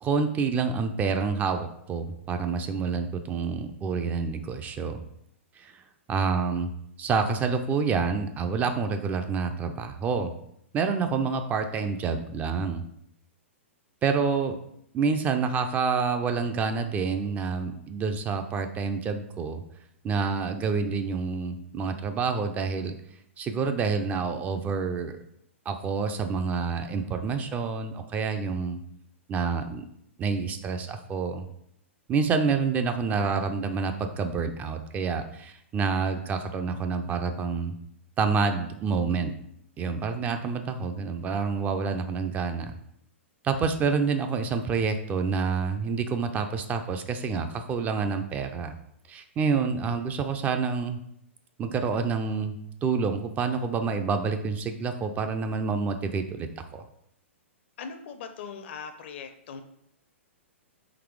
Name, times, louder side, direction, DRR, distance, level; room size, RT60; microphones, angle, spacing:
voice 1, 0.0-5.0 5.6-5.7 6.1-6.7 7.0-10.3 10.7-12.8 14.0-14.6 14.9-19.6 20.0-23.0 23.4-25.2 25.7-28.8 29.3-29.9 30.2-31.4 32.1-37.7 38.2-39.3 39.8-42.7 43.4-48.7 49.1-51.0 51.6-52.5 52.8-56.8, right 5 dB, 20° right, 7 dB, 0.4 m, -28 dB
voice 2, 57.8-59.6, left 6 dB, 60° left, 8 dB, 0.6 m, -40 dB
4.0 x 2.9 x 4.6 m, 0.73 s
hypercardioid pair, 115°, 7 cm